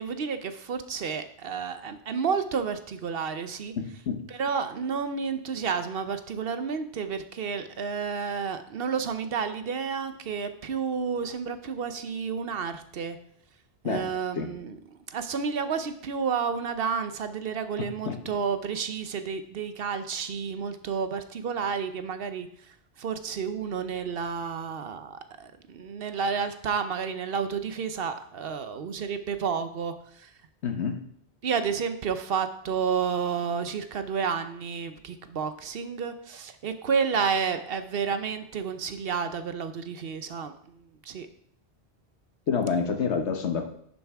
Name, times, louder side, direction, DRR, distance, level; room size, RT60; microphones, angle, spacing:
voice 1, 0.0-3.7 4.4-13.2 13.8-14.8 15.1-22.5 23.0-30.3 31.4-41.3, right 6 dB, 60° right, 10 dB, 0.9 m, -31 dB
voice 2, 3.8-4.2 13.8-14.1 14.4-14.5 18.1-18.2 30.6-31.0 42.5-43.7, left 6 dB, 80° left, 5 dB, 1.3 m, -27 dB
10.5 x 7.0 x 3.5 m, 0.66 s
omnidirectional pair, 1.1 m